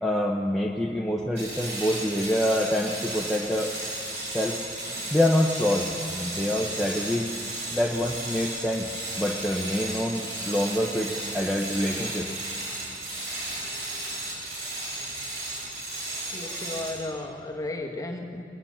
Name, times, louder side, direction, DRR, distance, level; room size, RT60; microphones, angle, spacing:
voice 1, 0.0-3.7 4.3-4.6 5.1-7.3 7.7-8.9 9.2-12.3, left 1 dB, ahead, -1 dB, 0.7 m, -26 dB
sound 1, 1.4-17.1, right 2 dB, 70° right, 5.3 m, -34 dB
voice 2, 16.3-18.4, left 2 dB, 20° left, 1 dB, 1.2 m, -34 dB
20.0 x 9.5 x 7.3 m, 2.5 s
head